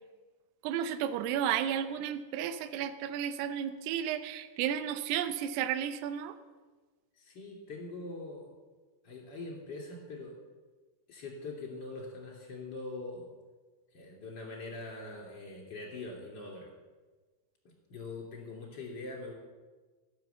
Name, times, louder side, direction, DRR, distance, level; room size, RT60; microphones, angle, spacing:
voice 1, 0.6-6.3, right 9 dB, 80° right, 10 dB, 2.7 m, -33 dB
voice 2, 7.2-8.5 9.0-10.3 11.1-13.3 13.9-16.7 17.9-19.3, left 2 dB, 30° left, -1 dB, 2.8 m, -43 dB
17.5 x 6.8 x 6.9 m, 1.3 s
omnidirectional pair, 5.0 m